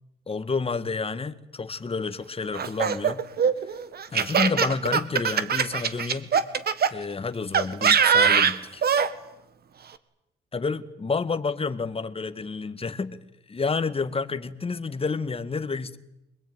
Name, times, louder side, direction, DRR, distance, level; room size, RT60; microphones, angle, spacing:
voice 1, 0.3-3.2 4.1-6.3 6.9-8.8 10.5-13.2 13.5-16.0, left 4 dB, 30° left, 1.9 m, -29 dB
Laughter, 2.5-6.9 7.5-9.1, right 7 dB, 50° right, 1.9 m, -22 dB
26.0 x 21.0 x 9.6 m
cardioid pair, 90°, 20 cm